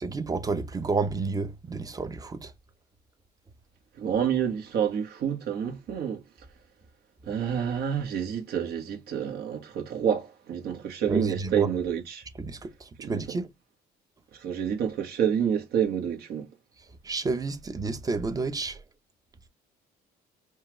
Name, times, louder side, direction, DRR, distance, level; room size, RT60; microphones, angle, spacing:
voice 1, 0.0-2.5 11.1-11.7 12.4-13.5 17.0-18.8, right 3 dB, 20° right, 0.7 m, -30 dB
voice 2, 4.0-6.2 7.3-12.2 13.0-13.2 14.3-16.5, right 8 dB, 70° right, 1.6 m, -28 dB
4.5 x 2.4 x 3.1 m
cardioid pair, 110°, 17 cm